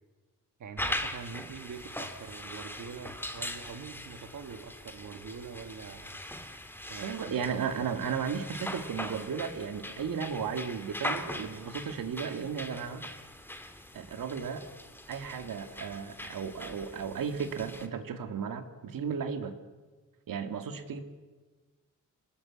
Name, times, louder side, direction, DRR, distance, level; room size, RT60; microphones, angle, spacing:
voice 1, 0.6-6.2 6.9-7.4, right 6 dB, 65° right, 6 dB, 1.7 m, -44 dB
sound 1, 0.8-17.9, left 1 dB, 5° left, 1.9 m, -41 dB
voice 2, 7.0-13.1 13.9-14.6 15.1-19.5 20.3-21.0, right 6 dB, 80° right, 8 dB, 2.3 m, -35 dB
28.0 x 19.5 x 8.6 m, 1.3 s
wide cardioid pair, 135°, 33 cm